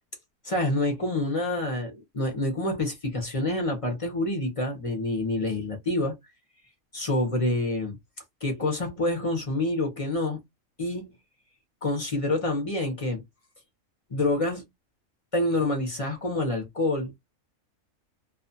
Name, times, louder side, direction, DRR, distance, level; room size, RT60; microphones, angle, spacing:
voice 1, 0.4-6.2 6.9-8.0 8.4-10.4 10.8-11.2 11.8-13.2 14.1-14.7 15.3-17.3, left 2 dB, 40° left, 0.5 m, -27 dB
2.4 x 2.3 x 2.6 m
omnidirectional pair, 1.5 m